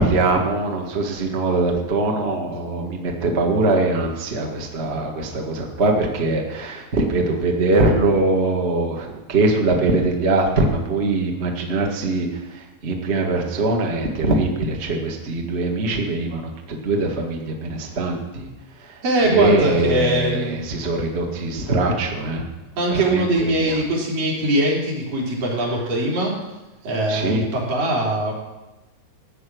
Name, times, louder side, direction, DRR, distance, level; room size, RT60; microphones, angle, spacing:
voice 1, 0.0-18.5 18.8-19.0 19.2-22.5 22.9-23.2 23.6-23.8 27.1-27.4, right 2 dB, 90° right, 1 dB, 0.5 m, -22 dB
voice 2, 19.0-20.6 22.8-26.3 26.8-28.3, right 1 dB, 60° right, -3 dB, 4.8 m, -21 dB
15.0 x 8.9 x 6.2 m, 1.0 s
omnidirectional pair, 4.4 m